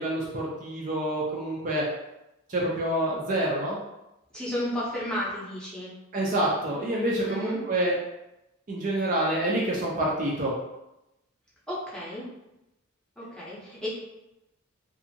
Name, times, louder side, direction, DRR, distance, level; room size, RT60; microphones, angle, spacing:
voice 1, 0.0-1.8 2.5-3.8 6.1-8.0 8.7-10.5, right 1 dB, 35° right, -4 dB, 0.4 m, -27 dB
voice 2, 4.3-5.9 7.2-7.6 11.7-12.2 13.2-13.9, equal, 5° left, -7 dB, 0.7 m, -32 dB
2.6 x 2.5 x 2.7 m, 0.92 s
head